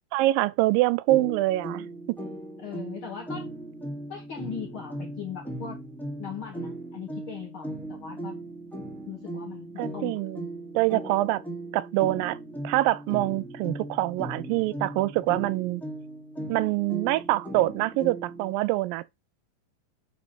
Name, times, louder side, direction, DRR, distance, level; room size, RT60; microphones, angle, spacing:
voice 1, 0.1-2.2 9.8-10.4 10.7-11.4 11.7-12.4 12.6-15.8 16.5-19.0, right 18 dB, 80° right, 2.3 m, -25 dB
sound 1, 1.1-18.5, right 1 dB, ahead, 1.0 m, -38 dB
voice 2, 2.6-3.5 4.1-5.8 6.2-8.4 9.1-10.2, left 7 dB, 60° left, 1.4 m, -39 dB
5.2 x 5.1 x 5.8 m
omnidirectional pair, 4.1 m